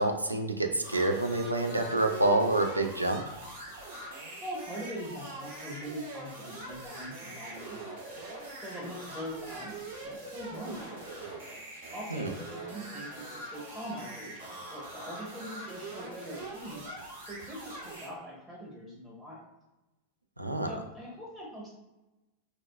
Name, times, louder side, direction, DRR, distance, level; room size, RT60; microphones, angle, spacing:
voice 1, 0.0-3.2 12.1-12.3 20.4-20.7, right 2 dB, 85° right, 5 dB, 0.3 m, -27 dB
sound 1, 0.8-18.1, right 2 dB, 60° right, 0.9 m, -43 dB
voice 2, 4.4-8.1 8.6-11.0 11.9-16.8 17.3-19.5 20.7-21.7, equal, 10° right, -5 dB, 0.8 m, -42 dB
4.2 x 2.2 x 2.2 m, 1.0 s
figure-of-eight pair, 90°, 0 cm